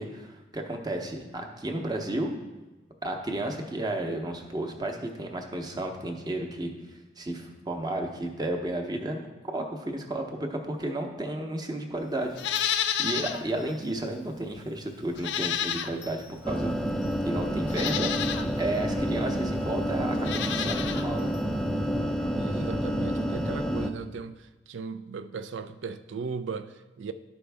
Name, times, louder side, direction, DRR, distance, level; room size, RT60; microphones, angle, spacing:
voice 1, 0.0-2.3 3.0-6.7 7.2-9.2 9.5-12.4 13.0-16.7 17.2-18.1 18.6-21.3, right 1 dB, 20° right, 0.8 m, -32 dB
Livestock farm animals working animals, 12.3-13.4 13.8-13.9 15.1-16.2 17.0-17.1 17.7-18.5 20.1-21.1 21.3-21.4, left 9 dB, 70° left, 0.4 m, -30 dB
sound 1, 16.4-23.9, equal, 5° left, 0.4 m, -29 dB
voice 2, 22.3-27.1, right 5 dB, 80° right, 0.4 m, -37 dB
11.0 x 5.2 x 3.4 m
head